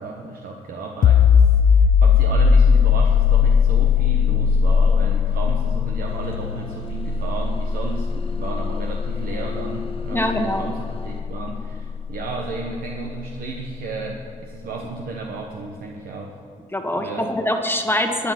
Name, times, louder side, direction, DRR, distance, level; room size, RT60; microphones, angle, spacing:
voice 1, 0.0-16.4 16.9-17.3, right 3 dB, 90° right, 1 dB, 1.1 m, -33 dB
sound 1, 1.0-12.5, left 6 dB, 70° left, 0.5 m, -19 dB
sound 2, 6.1-11.2, left 3 dB, 40° left, 1.3 m, -39 dB
voice 2, 10.1-10.7 16.7-18.3, left 1 dB, 15° left, 4 dB, 1.2 m, -23 dB
14.0 x 9.7 x 5.9 m, 2.6 s
cardioid pair, 65°, 14 cm